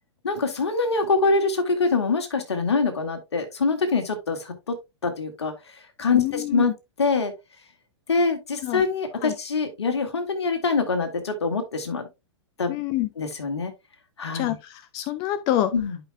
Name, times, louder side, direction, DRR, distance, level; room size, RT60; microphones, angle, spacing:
voice 1, 0.2-4.8 5.0-5.5 6.0-6.7 7.0-7.3 8.1-12.0 12.6-12.8 13.2-13.7 14.2-14.6 15.7-16.0, left 4 dB, 65° left, 1.8 m, -24 dB
voice 2, 6.1-6.6 8.6-8.8 9.2-9.3 12.7-13.1 14.3-15.7, left 13 dB, 25° left, 0.4 m, -26 dB
11.0 x 5.3 x 2.2 m
figure-of-eight pair, 105°, 15 cm